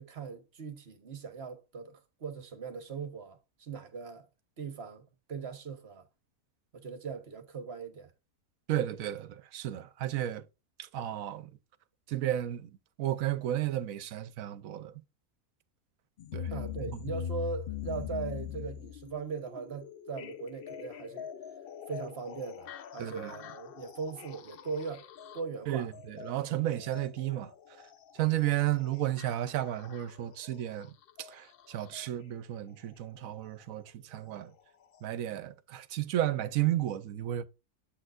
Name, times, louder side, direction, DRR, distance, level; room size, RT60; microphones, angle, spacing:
voice 1, 0.0-4.3 4.6-6.1 6.7-8.1 16.5-21.3 21.9-25.9, right 5 dB, 50° right, 1.2 m, -40 dB
voice 2, 8.7-10.4 10.8-11.5 12.1-12.7 13.0-14.9 16.3-16.5 16.9-17.0 23.0-23.3 25.7-27.5 28.2-30.9 31.2-34.5 35.0-37.4, right 13 dB, 70° right, 1.0 m, -33 dB
sound 1, 16.2-32.1 33.3-33.4 34.2-34.3 34.9-35.0, left 9 dB, 65° left, 0.5 m, -43 dB
7.9 x 6.3 x 2.4 m
omnidirectional pair, 1.5 m